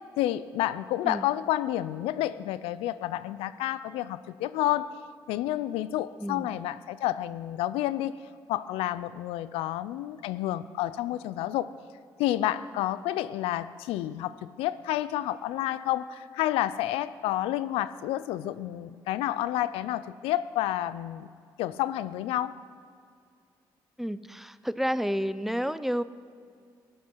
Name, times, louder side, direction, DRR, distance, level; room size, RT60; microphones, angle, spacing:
voice 1, 0.2-4.9 5.3-8.1 8.5-11.7 12.2-21.3 21.6-22.6, left 14 dB, 90° left, 16 dB, 0.4 m, -30 dB
voice 2, 24.0-26.0, equal, 5° right, 15 dB, 0.5 m, -30 dB
16.5 x 8.8 x 6.1 m, 2.3 s
supercardioid pair, 55°, 10 cm